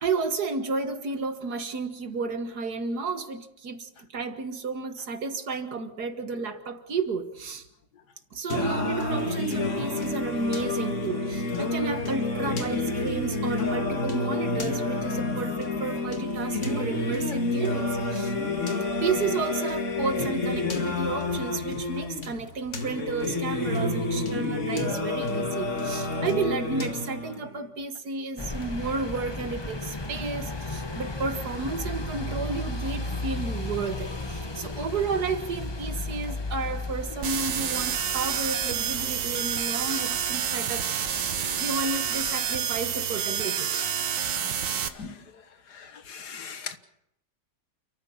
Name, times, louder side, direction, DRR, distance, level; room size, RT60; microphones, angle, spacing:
voice 1, 0.0-7.7 8.3-18.3 19.0-41.2 41.6-43.7, right 4 dB, 65° right, 8 dB, 2.1 m, -32 dB
Singing, 8.5-27.5, left 2 dB, 45° left, 2.3 m, -29 dB
sound 1, 28.4-42.5, left 2 dB, 20° left, 0.9 m, -35 dB
sound 2, 37.2-44.9, right 8 dB, 80° right, 1.9 m, -28 dB
voice 2, 45.7-46.8, left 6 dB, 70° left, 10 dB, 1.9 m, -39 dB
29.0 x 14.0 x 7.2 m, 0.80 s
omnidirectional pair, 1.9 m